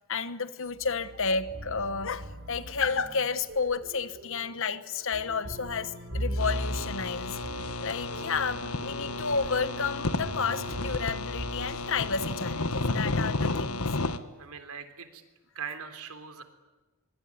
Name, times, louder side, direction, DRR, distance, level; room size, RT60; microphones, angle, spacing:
voice 1, 0.1-7.4 7.8-13.9, left 5 dB, 60° left, 1.2 m, -31 dB
sound 1, 0.7-12.8, equal, 55° right, 6.0 m, -39 dB
sound 2, 6.4-14.2, left 2 dB, 85° left, 1.6 m, -32 dB
voice 2, 14.4-15.2 15.6-16.4, right 6 dB, 80° right, 3.5 m, -40 dB
24.5 x 24.5 x 9.8 m
head